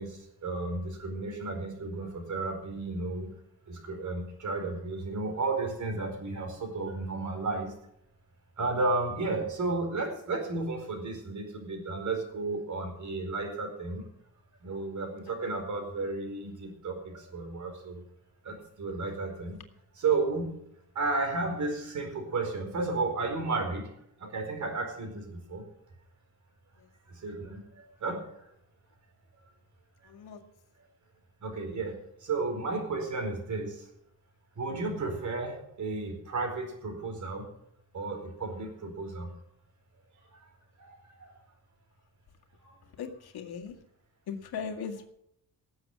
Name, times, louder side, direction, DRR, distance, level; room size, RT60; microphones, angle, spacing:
voice 1, 0.0-3.3 3.7-7.7 8.6-14.0 14.6-18.0 18.4-19.6 19.9-20.6 20.9-23.9 24.2-25.7 27.1-28.4 31.4-33.9 34.6-37.5 37.9-39.3 40.3-40.5 40.8-41.3 42.6-42.7, right 3 dB, 50° right, 4 dB, 4.7 m, -33 dB
voice 2, 30.1-30.4 43.0-43.7 44.3-45.1, left 6 dB, 90° left, 4 dB, 2.0 m, -38 dB
18.5 x 8.0 x 6.2 m, 0.73 s
wide cardioid pair, 160°, 37 cm